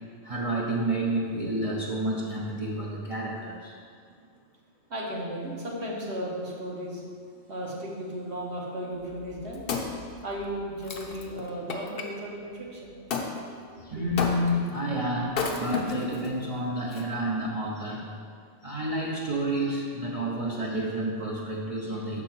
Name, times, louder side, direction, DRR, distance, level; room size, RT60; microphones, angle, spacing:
voice 1, 0.2-3.7 13.8-18.1 18.6-22.2, right 1 dB, 35° right, -4 dB, 0.7 m, -29 dB
voice 2, 4.9-7.0 7.4-9.8 10.2-12.9, equal, 60° right, -3 dB, 1.4 m, -35 dB
Wood, 9.1-12.1 13.1-13.3 14.2-14.7 15.3-16.3 16.9-17.0, left 4 dB, 55° left, 0.8 m, -32 dB
6.4 x 3.8 x 5.9 m, 2.1 s
omnidirectional pair, 1.3 m